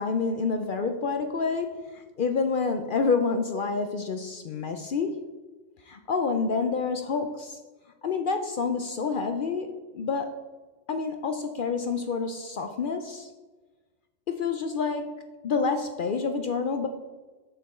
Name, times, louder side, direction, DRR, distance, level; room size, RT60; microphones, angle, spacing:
voice 1, 0.0-5.3 5.9-7.6 8.0-10.3 10.9-13.3 14.3-16.9, left 4 dB, 60° left, 7 dB, 0.6 m, -28 dB
6.8 x 6.6 x 4.2 m, 1.3 s
omnidirectional pair, 1.2 m